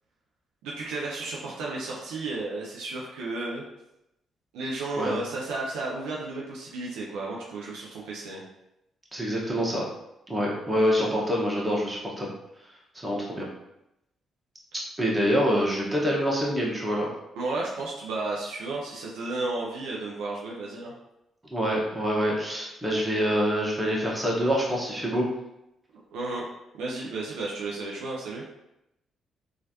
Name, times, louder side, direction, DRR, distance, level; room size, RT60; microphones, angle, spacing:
voice 1, 0.6-3.6 4.5-8.4 17.4-20.9 26.1-26.4 26.7-28.4, right 2 dB, 75° right, -3 dB, 0.5 m, -33 dB
voice 2, 9.1-9.8 10.3-12.3 12.9-13.5 15.0-17.1 21.5-25.3, equal, 20° right, -3 dB, 1.1 m, -26 dB
3.1 x 2.4 x 2.7 m, 0.87 s
hypercardioid pair, 45°, 0 cm